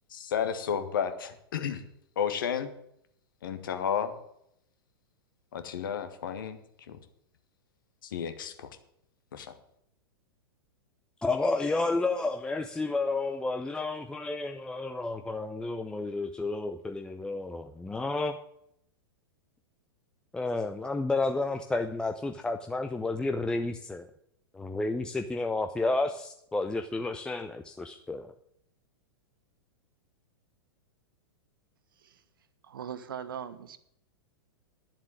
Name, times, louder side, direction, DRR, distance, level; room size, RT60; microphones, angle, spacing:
voice 1, 0.1-1.8 2.1-2.7 3.4-4.2 5.5-6.6 6.9-7.0 8.0-8.8 9.3-9.5, left 8 dB, 55° left, 1.5 m, -32 dB
voice 2, 11.2-18.4 20.3-24.1 24.5-28.3, left 3 dB, 5° left, 0.6 m, -31 dB
voice 3, 32.6-33.8, right 8 dB, 60° right, 1.0 m, -40 dB
11.0 x 7.4 x 9.4 m
figure-of-eight pair, 100°, 13 cm